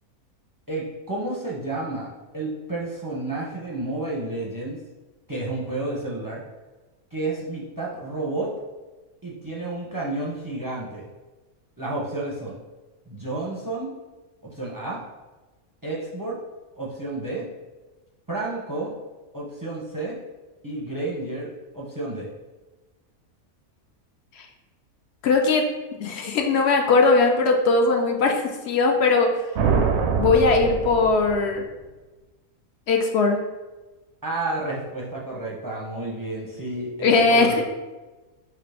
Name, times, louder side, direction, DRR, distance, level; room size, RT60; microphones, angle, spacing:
voice 1, 0.7-4.8 5.3-6.4 7.1-8.5 9.2-11.1 11.8-12.6 13.1-13.9 14.4-15.0 15.8-16.4 16.8-17.5 18.3-18.9 19.3-20.2 20.6-22.3 34.2-37.7, right 2 dB, 20° right, -3 dB, 0.5 m, -31 dB
voice 2, 25.2-25.7 26.0-29.3 30.1-31.6 32.9-33.4 37.0-37.7, left 3 dB, 65° left, 3 dB, 0.7 m, -19 dB
sound 1, 29.5-31.7, right 6 dB, 65° right, 0.7 m, -24 dB
4.5 x 2.4 x 4.8 m, 1.2 s
omnidirectional pair, 1.5 m